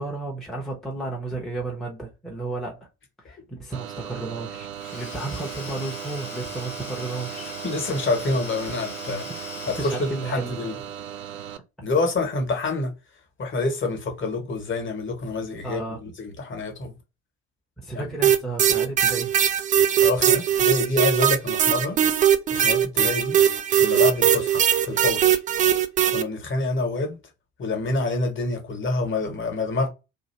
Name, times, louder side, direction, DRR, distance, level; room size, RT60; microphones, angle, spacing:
voice 1, 0.0-2.9 3.2-7.5 9.8-10.6 14.4-14.5 15.6-16.0 17.8-19.3, right 3 dB, ahead, 0.9 m, -33 dB
sound 1, 3.7-11.6, right 10 dB, 80° right, 0.5 m, -37 dB
Domestic sounds home sounds / Tools, 4.7-10.8, left 4 dB, 75° left, 1.2 m, -40 dB
voice 2, 7.6-9.3 9.7-10.7 11.8-12.9 13.4-16.9 17.9-18.1 20.0-22.0 22.5-23.4 23.8-25.4 26.1-27.2 27.6-29.9, left 3 dB, 30° left, 1.3 m, -27 dB
sound 2, 18.2-26.2, right 10 dB, 20° right, 0.3 m, -20 dB
2.7 x 2.7 x 4.3 m
figure-of-eight pair, 55°, 39 cm